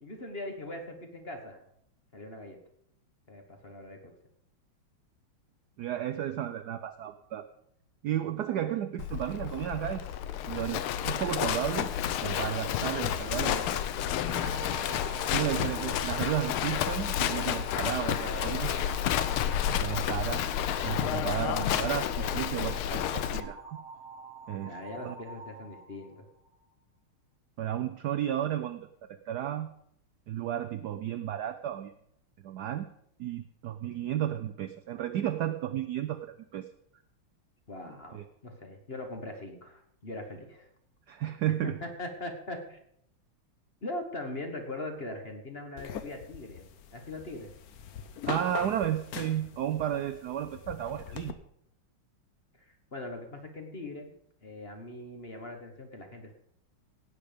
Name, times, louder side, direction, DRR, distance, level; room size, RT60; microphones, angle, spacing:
voice 1, 0.0-1.6 2.1-2.6 3.3-4.1 20.0-20.1 24.6-26.2 37.7-40.7 41.8-42.8 43.8-47.5 52.6-54.1 54.4-56.3, left 2 dB, 30° left, 4 dB, 1.4 m, -41 dB
voice 2, 5.8-7.5 8.0-10.1 10.5-11.9 12.2-14.0 14.3-14.4 15.3-18.7 19.7-20.4 20.8-23.8 24.5-24.8 25.0-25.1 27.6-29.7 30.3-31.9 32.4-32.9 33.2-36.7 38.1-38.2 41.1-41.8 48.3-51.3, right 11 dB, 75° right, 10 dB, 0.9 m, -33 dB
Livestock farm animals working animals, 9.0-23.4, left 10 dB, 80° left, 1.6 m, -30 dB
sound 1, 14.3-26.5, right 2 dB, 35° right, 1.6 m, -46 dB
sound 2, 45.8-51.3, left 8 dB, 60° left, 1.0 m, -42 dB
16.0 x 8.7 x 5.1 m, 0.71 s
omnidirectional pair, 2.4 m